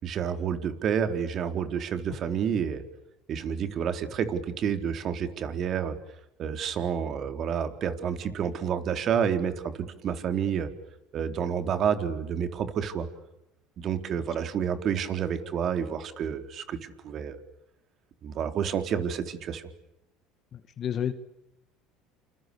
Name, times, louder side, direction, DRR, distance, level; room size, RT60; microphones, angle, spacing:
voice 1, 0.0-2.8 3.3-6.0 6.4-10.7 11.1-13.1 13.8-17.4 18.2-19.7, right 7 dB, 45° right, 8 dB, 4.0 m, -29 dB
voice 2, 20.5-21.1, left 9 dB, 45° left, 10 dB, 2.2 m, -30 dB
29.0 x 29.0 x 7.2 m, 0.88 s
supercardioid pair, 100°, 0 cm